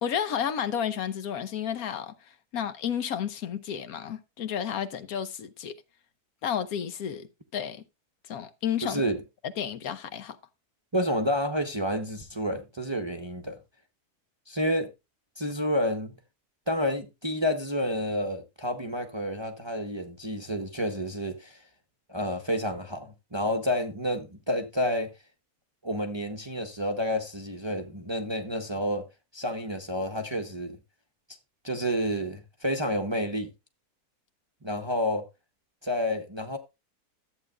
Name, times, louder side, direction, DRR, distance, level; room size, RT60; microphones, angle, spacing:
voice 1, 0.0-5.7 6.4-7.3 7.5-7.8 8.3-9.0 9.4-10.4, left 8 dB, 70° left, 1.2 m, -31 dB
voice 2, 8.8-9.2 10.9-13.6 14.5-14.9 15.4-16.2 16.7-21.6 22.1-25.1 25.8-29.1 29.3-30.8 31.6-33.5 34.6-35.3 35.8-36.6, equal, 20° right, 0.8 m, -29 dB
13.5 x 8.2 x 2.3 m
omnidirectional pair, 1.7 m